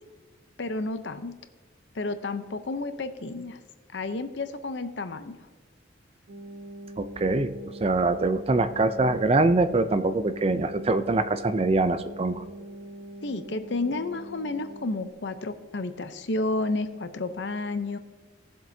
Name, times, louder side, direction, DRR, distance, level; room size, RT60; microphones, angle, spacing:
voice 1, 0.6-1.3 1.9-3.6 3.9-5.4 13.2-18.0, left 2 dB, 65° left, 10 dB, 0.7 m, -31 dB
sound 1, 6.3-15.1, right 1 dB, 60° right, 1.0 m, -43 dB
voice 2, 7.0-7.5 7.8-12.4, right 2 dB, 30° right, 11 dB, 0.4 m, -24 dB
18.0 x 7.5 x 2.7 m, 1.3 s
head